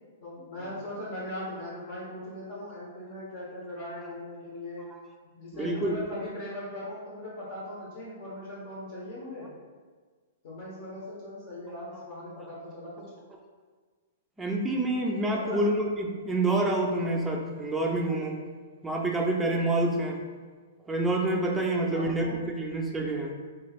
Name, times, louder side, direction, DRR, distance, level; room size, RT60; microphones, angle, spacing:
voice 1, 0.2-4.8 5.4-9.5 10.4-13.0 15.3-15.6 21.9-22.3, left 1 dB, 50° left, -7 dB, 1.0 m, -39 dB
voice 2, 5.5-6.0 14.4-18.4 18.8-20.2 20.9-23.4, right 2 dB, 10° right, 0 dB, 0.4 m, -27 dB
3.4 x 3.1 x 2.4 m, 1.5 s
hypercardioid pair, 135°, 0 cm